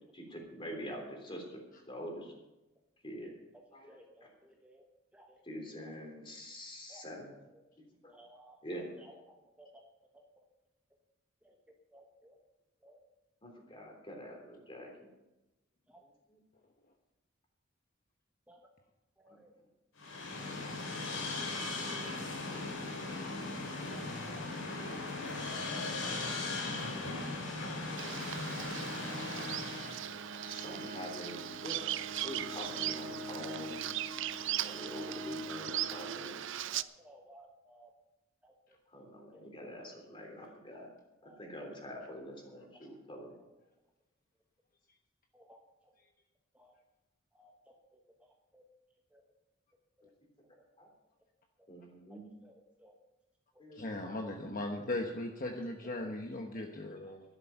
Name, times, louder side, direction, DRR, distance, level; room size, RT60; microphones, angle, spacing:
voice 1, 0.1-2.3 3.0-3.3 3.7-3.9 5.5-7.3 8.0-8.1 8.6-8.9 13.4-15.1 30.5-33.9 34.6-36.4 38.9-40.9 41.2-43.4 50.8-50.9 51.7-52.2 53.6-54.2 54.5-54.6, equal, 25° left, 1 dB, 3.5 m, -45 dB
voice 2, 3.9-4.3 4.6-4.8 5.1-5.3 5.9-6.0 6.9-7.4 8.1-8.6 9.0-9.1 9.6-9.7 11.4-11.5 11.9-12.3 12.8-13.0 15.9-16.0 18.5-18.6 19.2-19.5 23.9-24.0 25.8-25.9 26.1-26.3 26.9-27.3 28.5-28.7 29.0-29.5 30.7-30.8 35.5-35.6 36.7-37.9 38.9-39.0 41.2-41.4 45.3-45.6 46.6-46.7 47.4-47.5 48.5-48.6 49.1-49.2 52.1-52.5 52.8-52.9 53.8-54.0 56.5-56.7, right 1 dB, 5° right, 1 dB, 1.1 m, -58 dB
sound 1, 20.0-30.1, left 3 dB, 80° left, 4.2 m, -38 dB
Bird vocalization bird call bird song, 28.0-36.8, right 12 dB, 65° right, 0.5 m, -39 dB
Bowed string instrument, 28.5-36.7, equal, 45° right, 1.2 m, -46 dB
voice 3, 53.8-57.2, left 1 dB, 45° left, 2 dB, 1.1 m, -38 dB
12.5 x 11.0 x 5.8 m, 0.99 s
head